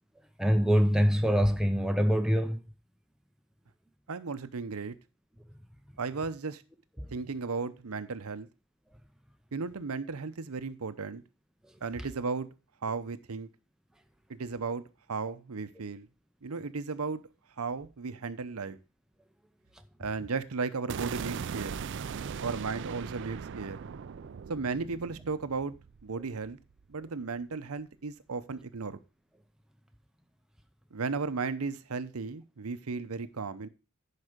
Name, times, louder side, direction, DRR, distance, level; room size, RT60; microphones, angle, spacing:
voice 1, 0.4-2.6 7.0-7.1, equal, 5° right, 0.6 m, -24 dB
voice 2, 4.1-4.9 6.0-6.6 7.1-8.5 9.5-11.2 11.8-12.5 12.8-13.5 14.3-14.8 15.1-16.1 16.4-17.2 17.6-18.8 20.0-21.8 22.4-23.8 24.5-25.7 26.0-26.6 26.9-29.0 30.9-33.7, right 4 dB, 80° right, 0.7 m, -35 dB
sound 1, 20.9-26.9, right 6 dB, 55° right, 0.4 m, -39 dB
11.0 x 5.0 x 5.0 m
head